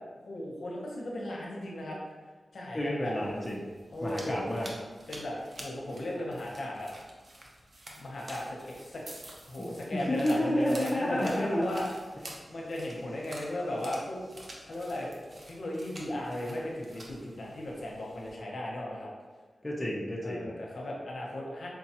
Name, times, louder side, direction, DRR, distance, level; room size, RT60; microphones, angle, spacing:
voice 1, 0.3-2.0 2.5-3.1 3.9-4.5 5.1-6.9 8.0-9.0 9.5-11.9 12.5-14.2 14.6-15.2 15.4-19.1 20.2-21.7, left 1 dB, 65° left, -3 dB, 0.7 m, -36 dB
voice 2, 2.7-3.7 4.0-4.7 9.6-11.8 19.6-20.5, left 1 dB, 25° left, -4 dB, 0.5 m, -30 dB
sound 1, 3.1-18.3, right 1 dB, 45° right, 0.6 m, -49 dB
4.6 x 2.3 x 2.8 m, 1.4 s
wide cardioid pair, 120°, 0 cm